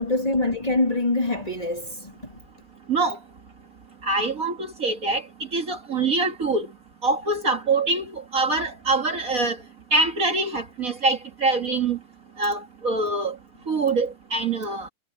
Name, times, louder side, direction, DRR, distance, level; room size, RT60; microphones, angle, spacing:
voice 1, 0.0-2.4, left 2 dB, 20° left, 2.0 m, -25 dB
voice 2, 2.9-3.2 4.0-5.3 5.5-6.7 7.0-9.6 9.9-12.0 12.4-13.4 13.7-14.9, right 3 dB, 45° right, 2.0 m, -24 dB
omnidirectional pair, 2.1 m